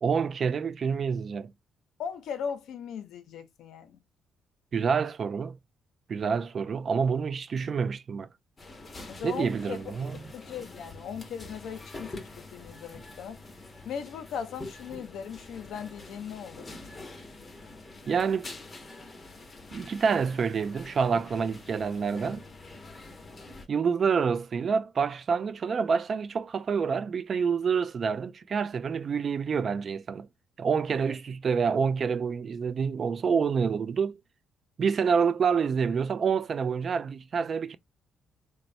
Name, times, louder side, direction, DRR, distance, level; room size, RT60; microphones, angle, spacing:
voice 1, 0.0-1.5 4.7-5.6 6.1-8.3 9.2-10.2 18.1-18.5 19.7-22.4 23.7-30.3 30.6-34.2 34.8-37.8, right 6 dB, 50° right, 0.3 m, -27 dB
voice 2, 2.0-4.0 9.1-9.9 10.3-13.4 13.8-16.7, left 7 dB, 75° left, 0.5 m, -38 dB
sound 1, 8.6-23.7, left 2 dB, 30° left, 0.8 m, -46 dB
3.0 x 2.1 x 2.5 m
cardioid pair, 90°, 0 cm